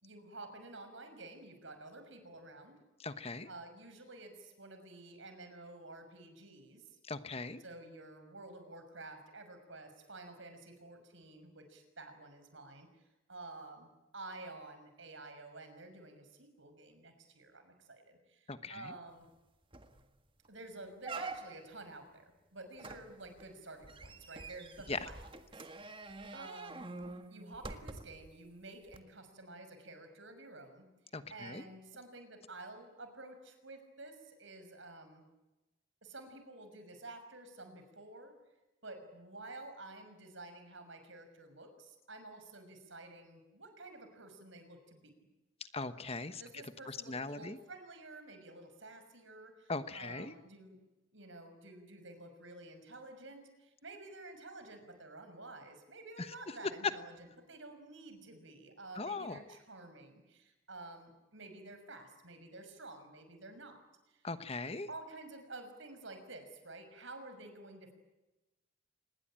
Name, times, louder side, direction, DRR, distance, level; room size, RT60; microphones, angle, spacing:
voice 1, 0.0-2.8 3.5-7.0 7.6-13.0 13.3-19.3 20.5-25.2 25.5-26.0 26.3-26.9 27.3-30.9 31.3-35.3 36.0-38.3 38.8-45.1 46.4-50.8 51.1-63.8 64.1-64.3 64.9-67.9, right 2 dB, 65° right, 8 dB, 6.0 m, -51 dB
voice 2, 3.0-3.5 7.1-7.6 18.5-18.9 24.9-25.0 31.1-31.6 45.7-46.4 46.9-47.6 49.7-50.3 56.2-56.3 56.8-56.9 58.9-59.4 64.2-64.9, left 3 dB, 30° left, 11 dB, 1.1 m, -39 dB
sound 1, 19.3-19.4 19.7-20.0 20.4-20.5 21.0-21.8 22.8-28.3 28.9-29.0, right 3 dB, 25° right, 1.7 m, -46 dB
26.0 x 21.0 x 8.9 m, 1.0 s
head